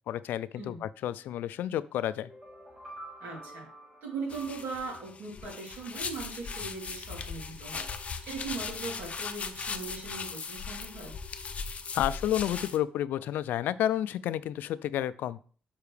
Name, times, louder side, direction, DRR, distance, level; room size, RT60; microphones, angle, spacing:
voice 1, 0.1-2.3 11.9-15.4, left 11 dB, 85° left, 16 dB, 0.4 m, -30 dB
sound 1, 2.2-5.2, right 1 dB, 30° right, 3.2 m, -49 dB
voice 2, 3.2-3.7 4.0-11.1, right 4 dB, 85° right, -2 dB, 3.1 m, -39 dB
sound 2, 4.3-12.8, left 5 dB, 45° left, 0.7 m, -38 dB
6.9 x 5.6 x 3.3 m, 0.42 s
cardioid pair, 90°, 3 cm